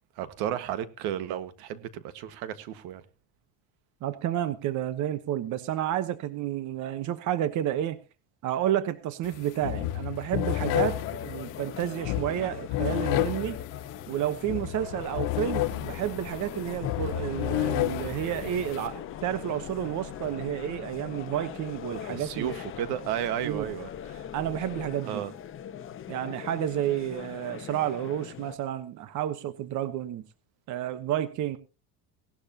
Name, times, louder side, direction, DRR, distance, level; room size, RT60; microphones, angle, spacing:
voice 1, 0.2-3.0 22.1-24.2 25.0-25.3, right 11 dB, 80° right, 1.7 m, -33 dB
voice 2, 4.0-8.0 8.4-13.6 14.1-22.5 23.4-23.7 24.3-25.2 26.1-30.2 30.7-31.6, right 11 dB, 50° right, 1.1 m, -30 dB
sound 1, 9.2-9.4 9.6-18.9, left 15 dB, 85° left, 1.2 m, -31 dB
sound 2, 10.4-28.6, left 9 dB, 35° left, 1.2 m, -42 dB
sound 3, 14.8-24.9, left 15 dB, 60° left, 1.0 m, -45 dB
18.0 x 12.0 x 2.9 m
cardioid pair, 145°, 37 cm